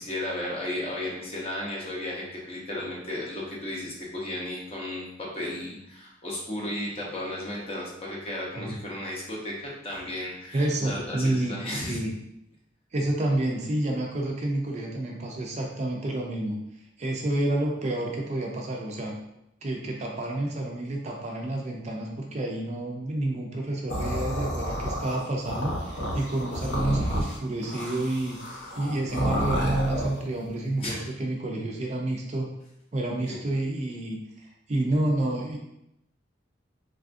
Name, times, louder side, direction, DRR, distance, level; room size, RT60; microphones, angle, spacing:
voice 1, 0.0-12.0 30.8-31.0 33.3-33.4, left 1 dB, 30° left, -3 dB, 0.7 m, -34 dB
voice 2, 10.5-11.6 11.9-12.1 12.9-16.6 17.0-19.1 19.6-32.5 32.9-34.2 34.7-35.6, right 1 dB, 35° right, 0 dB, 0.4 m, -29 dB
sound 1, 23.9-30.2, equal, 70° left, 0.6 m, -30 dB
3.3 x 2.4 x 2.5 m, 0.81 s
head